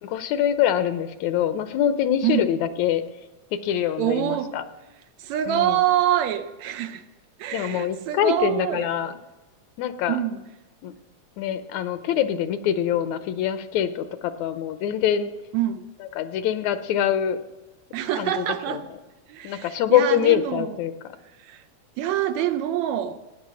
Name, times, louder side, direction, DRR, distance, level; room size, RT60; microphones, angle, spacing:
voice 1, 0.0-3.0 3.5-4.6 5.5-5.8 7.5-9.1 9.8-10.2 10.8-10.9 11.4-15.3 16.0-17.4 18.2-18.8 19.4-20.9, left 10 dB, 80° left, 11 dB, 2.1 m, -24 dB
voice 2, 4.0-4.5 5.2-7.0 7.4-8.9 10.1-10.4 15.5-15.9 17.9-18.8 19.3-20.7 21.4-21.6 22.0-23.2, right 11 dB, 75° right, 10 dB, 2.0 m, -25 dB
17.0 x 9.7 x 6.2 m, 1.1 s
omnidirectional pair, 3.3 m